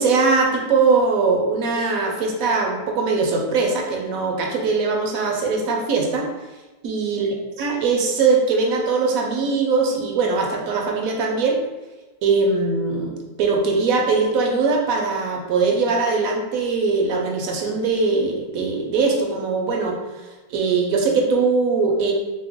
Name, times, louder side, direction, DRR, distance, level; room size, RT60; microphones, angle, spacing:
voice 1, 0.0-6.3 6.8-7.3 7.6-11.6 12.2-22.1, right 4 dB, 70° right, 0 dB, 0.9 m, -21 dB
2.9 x 2.1 x 3.5 m, 1.1 s
omnidirectional pair, 1.8 m